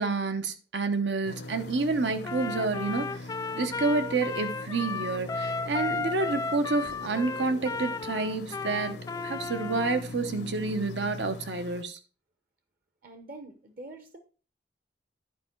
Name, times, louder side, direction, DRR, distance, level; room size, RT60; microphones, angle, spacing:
voice 1, 0.0-3.3 3.5-8.9 9.2-12.0, right 3 dB, 85° right, 9 dB, 1.0 m, -29 dB
sound 1, 1.2-11.8, left 2 dB, 70° left, 0.6 m, -41 dB
Trumpet, 2.2-10.0, left 4 dB, 20° left, 0.3 m, -34 dB
voice 2, 13.0-14.2, right 2 dB, 55° right, 7 dB, 0.9 m, -45 dB
10.5 x 4.7 x 4.5 m, 0.37 s
head